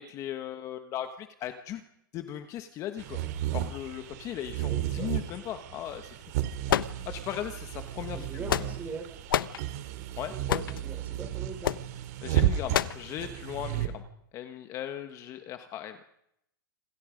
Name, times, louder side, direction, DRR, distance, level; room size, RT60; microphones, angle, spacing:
voice 1, 0.0-1.8 2.1-3.2 3.5-6.2 7.0-8.7 10.2-10.3 12.2-14.0 14.3-16.0, left 11 dB, 25° left, 8 dB, 1.4 m, -38 dB
sound 1, 3.0-13.9, right 12 dB, 50° right, 3.1 m, -33 dB
voice 2, 4.7-5.1 8.1-9.1 10.3-11.7, right 5 dB, 15° right, 5 dB, 5.8 m, -41 dB
sound 2, 6.7-7.4 8.2-8.9 9.3-9.6 10.5-10.8 11.6-11.9 12.7-13.0, left 10 dB, 75° left, 1.1 m, -28 dB
27.5 x 26.5 x 5.2 m, 0.78 s
hypercardioid pair, 150°, 11 cm